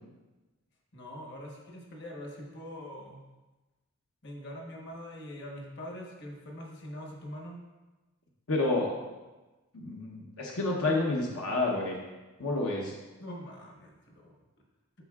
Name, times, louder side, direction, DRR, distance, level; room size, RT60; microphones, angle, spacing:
voice 1, 0.9-3.3 4.2-7.6 13.2-14.3, equal, 50° left, -1 dB, 1.2 m, -43 dB
voice 2, 8.5-8.9 9.7-12.0 12.4-12.9, left 2 dB, 85° left, -2 dB, 0.9 m, -29 dB
11.5 x 4.5 x 2.4 m, 1.1 s
head